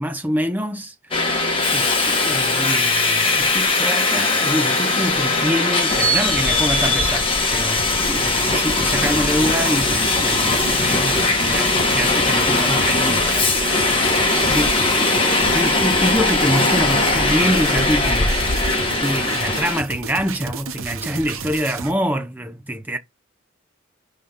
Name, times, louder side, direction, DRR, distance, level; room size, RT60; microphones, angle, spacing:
voice 1, 0.0-1.4 1.7-13.3 14.4-18.4 19.0-23.0, equal, 10° right, 0.7 m, -25 dB
Subway metro underground, 1.1-19.8, left 3 dB, 25° left, 1.2 m, -19 dB
sound 1, 7.7-21.9, right 5 dB, 85° right, 0.8 m, -32 dB
5.0 x 3.7 x 5.6 m
head